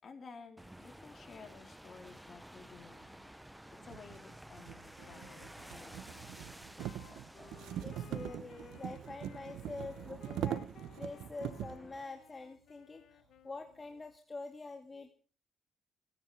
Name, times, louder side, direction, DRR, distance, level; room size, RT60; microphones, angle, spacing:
voice 1, 0.0-3.2 3.5-6.1, left 5 dB, 45° left, 6 dB, 3.9 m, -54 dB
sound 1, 0.6-12.0, right 1 dB, 5° right, 0.7 m, -54 dB
sound 2, 3.0-3.1 3.8-11.9, right 11 dB, 85° right, 1.0 m, -42 dB
Wind instrument woodwind instrument, 5.0-14.0, left 10 dB, 75° left, 1.1 m, -60 dB
voice 2, 7.8-10.7 10.9-15.1, left 3 dB, 25° left, 5 dB, 2.0 m, -46 dB
28.5 x 10.0 x 4.8 m, 0.38 s
cardioid pair, 90°, 0 cm